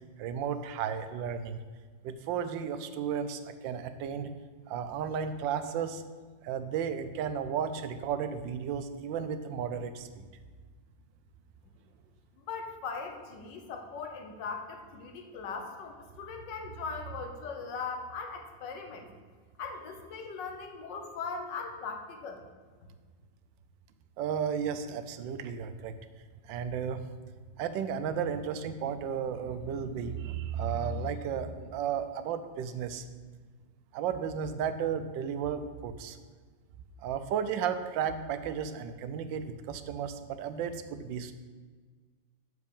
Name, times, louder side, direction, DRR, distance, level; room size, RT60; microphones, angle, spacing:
voice 1, 0.2-1.6 2.0-4.3 4.7-6.0 6.4-10.3 24.2-25.9 26.5-27.0 27.6-33.0 33.9-36.2 37.0-41.3, right 7 dB, 80° right, 10 dB, 1.3 m, -33 dB
voice 2, 12.4-19.1 19.6-22.4, left 5 dB, 70° left, 4 dB, 1.6 m, -39 dB
6.8 x 4.8 x 6.9 m, 1.5 s
omnidirectional pair, 2.1 m